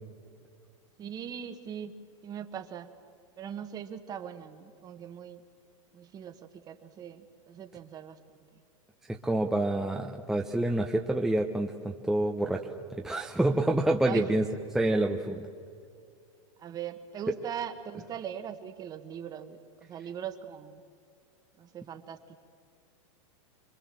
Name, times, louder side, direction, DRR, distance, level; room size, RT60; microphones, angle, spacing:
voice 1, 1.0-2.0 2.2-2.9 3.4-5.4 5.9-8.4 14.1-14.3 16.6-20.8 21.6-22.4, right 9 dB, 25° right, 9 dB, 1.4 m, -40 dB
voice 2, 9.1-12.6 12.9-14.4 14.7-15.4, right 1 dB, ahead, 1 dB, 0.8 m, -27 dB
26.0 x 23.0 x 7.7 m, 2.3 s
supercardioid pair, 155°, 17 cm